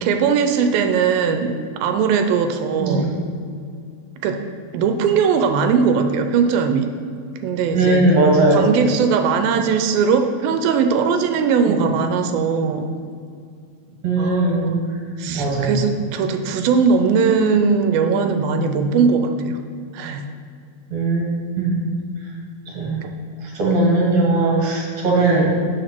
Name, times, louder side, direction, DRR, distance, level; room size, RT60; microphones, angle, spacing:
voice 1, 0.0-3.1 4.2-4.4 4.7-6.9 7.4-8.1 8.5-12.9 14.2-14.8 15.2-19.6 19.9-20.3 23.0-23.1, right 5 dB, 80° right, 6 dB, 2.4 m, -19 dB
voice 2, 2.8-3.1 7.7-8.7 11.7-11.8 14.0-14.8 15.3-15.9 20.9-21.2 21.6-21.8 22.7-23.0 23.4-25.5, right 2 dB, 55° right, -3 dB, 2.2 m, -18 dB
8.1 x 6.5 x 5.9 m, 2.3 s
omnidirectional pair, 4.3 m